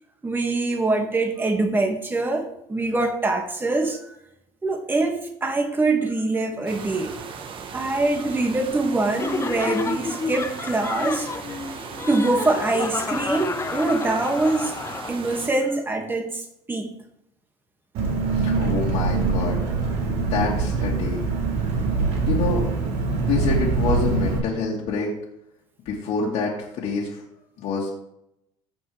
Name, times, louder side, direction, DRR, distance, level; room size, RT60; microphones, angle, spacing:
voice 1, 0.2-4.0 4.6-7.2 7.7-11.3 12.1-14.7 15.1-16.4 16.7-16.9, right 2 dB, 15° right, 2 dB, 2.2 m, -24 dB
sound 1, 6.7-15.5, right 6 dB, 45° right, 1.3 m, -37 dB
Laughter, 9.2-15.5, left 4 dB, 20° left, 0.6 m, -31 dB
Engine, 17.9-24.4, right 4 dB, 70° right, 4.6 m, -23 dB
voice 2, 18.3-19.6 20.2-21.2 22.3-22.8 23.2-25.1 25.8-27.2 27.6-28.0, left 4 dB, 60° left, -4 dB, 2.6 m, -27 dB
15.5 x 6.0 x 3.5 m, 0.78 s
supercardioid pair, 105°, 12 cm